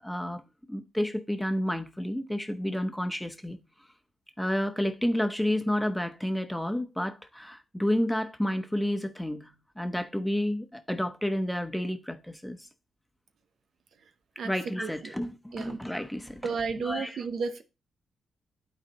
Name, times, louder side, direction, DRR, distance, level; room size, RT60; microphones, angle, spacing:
voice 1, 0.0-0.4 0.7-3.6 4.4-12.6 14.4-16.5 16.8-17.2, left 1 dB, 5° left, 1.0 m, -30 dB
voice 2, 14.8-15.1 15.5-15.8 16.4-17.6, right 5 dB, 70° right, 0.6 m, -32 dB
11.5 x 4.1 x 2.9 m
supercardioid pair, 60°, 0 cm